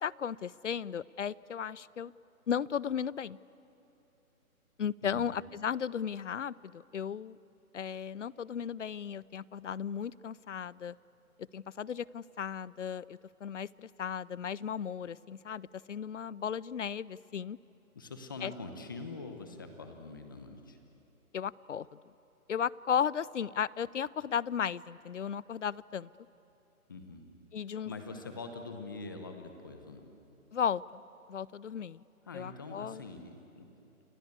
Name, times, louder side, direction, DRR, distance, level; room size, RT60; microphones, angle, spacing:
voice 1, 0.0-2.1 2.5-3.4 4.8-7.4 7.7-11.0 11.5-17.6 18.4-18.5 21.3-21.9 22.5-26.1 27.5-27.9 30.5-31.0 31.3-32.0 32.3-33.0, left 8 dB, 55° left, 22 dB, 0.5 m, -35 dB
voice 2, 5.0-5.3 17.9-20.8 26.9-27.3 27.8-30.1 32.2-33.7, left 3 dB, 15° left, 6 dB, 0.9 m, -44 dB
29.0 x 23.0 x 8.4 m, 3.0 s
hypercardioid pair, 170°, 44 cm